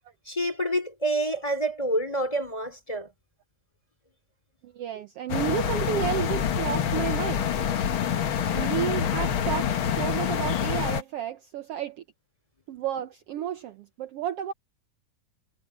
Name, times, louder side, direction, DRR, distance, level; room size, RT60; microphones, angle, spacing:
voice 1, 0.3-3.1, right 1 dB, 10° left, 3.1 m, -27 dB
voice 2, 4.6-7.8 8.5-12.0 12.7-14.5, right 10 dB, 75° right, 1.4 m, -32 dB
sound 1, 5.3-11.0, left 8 dB, 55° left, 1.5 m, -26 dB
omnidirectional pair, 3.7 m